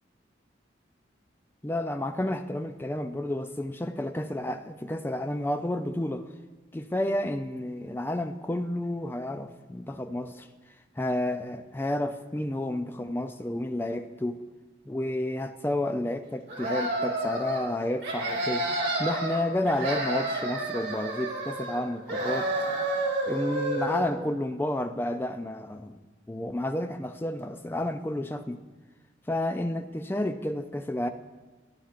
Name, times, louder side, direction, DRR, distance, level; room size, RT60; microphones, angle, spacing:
voice 1, 1.6-6.3 6.7-10.5 11.0-14.4 14.9-18.7 19.0-22.5 23.3-28.6 29.3-31.1, left 1 dB, 10° left, 9 dB, 0.3 m, -31 dB
sound 1, 16.5-17.6 18.0-19.4 19.7-21.8 22.1-24.1, right 2 dB, 65° right, 2.2 m, -30 dB
14.5 x 10.5 x 2.5 m, 1.3 s
head